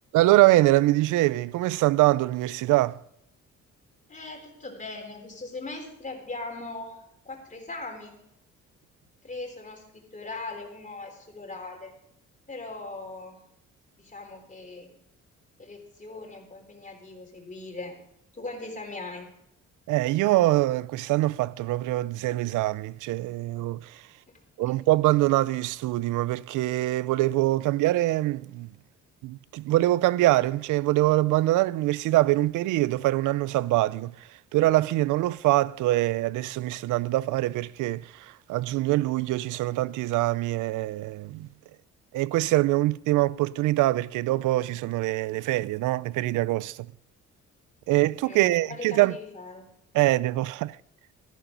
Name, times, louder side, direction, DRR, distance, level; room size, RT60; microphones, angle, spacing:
voice 1, 0.1-3.0 19.9-24.1 24.6-28.7 29.2-41.5 42.1-46.9 47.9-49.2 49.9-50.8, right 17 dB, 85° right, 0.5 m, -24 dB
voice 2, 4.1-7.0 7.2-8.1 9.2-11.9 12.5-13.4 14.0-14.9 15.6-18.0 18.3-19.3 24.6-24.7 48.3-49.7, left 3 dB, 25° left, 3.8 m, -39 dB
13.5 x 11.5 x 3.9 m
cardioid pair, 90°, 30 cm